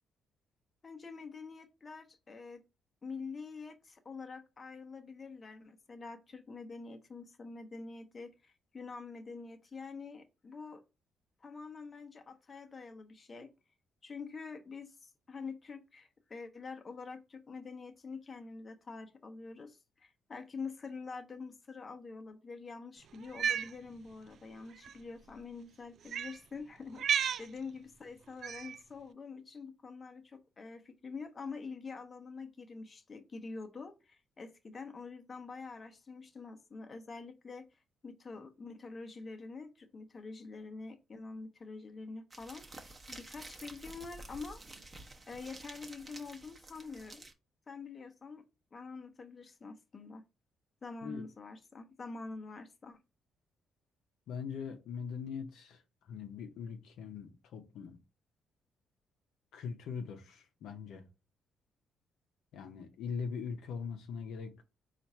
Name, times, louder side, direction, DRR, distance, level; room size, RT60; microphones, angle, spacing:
voice 1, 0.8-2.6 3.0-10.8 11.4-13.5 14.0-44.6 45.3-47.2 47.7-48.4 48.7-50.2 50.8-53.0, left 4 dB, 35° left, 0.8 m, -46 dB
Cat, 23.2-23.7 24.8-24.9 26.1-26.4 27.0-27.5 28.4-28.8, right 8 dB, 65° right, 0.3 m, -32 dB
sound 1, 42.3-47.3, right 2 dB, 20° right, 0.9 m, -50 dB
voice 2, 54.3-55.8 56.1-58.0 59.5-61.1 62.5-64.6, left 6 dB, 80° left, 0.6 m, -41 dB
4.4 x 2.4 x 4.2 m
cardioid pair, 90°, 0 cm